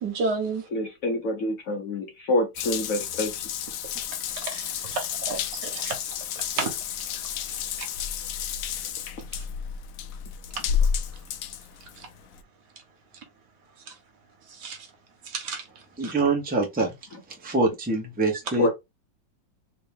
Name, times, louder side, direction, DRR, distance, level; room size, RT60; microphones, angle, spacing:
voice 1, 0.0-0.6 4.4-6.0 6.6-6.7 7.8-7.9 14.6-14.8 15.3-15.6, right 4 dB, 65° right, 1.6 m, -30 dB
voice 2, 0.7-3.5 18.6-18.7, left 1 dB, 60° left, 1.0 m, -27 dB
Water tap faucet / Bathtub (filling or washing) / Drip, 2.6-12.4, left 8 dB, 85° left, 0.7 m, -31 dB
voice 3, 16.0-16.9 17.3-18.7, right 3 dB, 5° right, 0.7 m, -25 dB
3.5 x 2.9 x 3.4 m
omnidirectional pair, 2.0 m